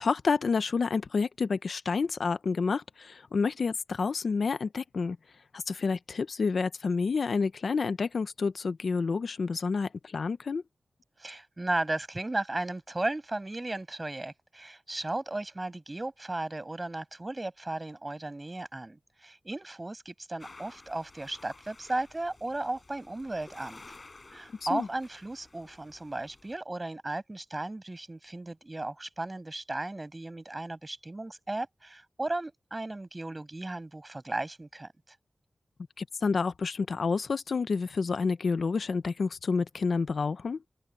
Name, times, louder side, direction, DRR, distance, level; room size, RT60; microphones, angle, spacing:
voice 1, 0.0-5.2 5.5-10.6 24.7-24.9 36.0-40.6, left 4 dB, 70° left, 0.7 m, -29 dB
voice 2, 11.2-23.8 24.3-35.1, right 2 dB, 25° right, 6.5 m, -35 dB
sound 1, 20.4-26.5, left 3 dB, 35° left, 6.2 m, -53 dB
wide cardioid pair, 120°, 0 cm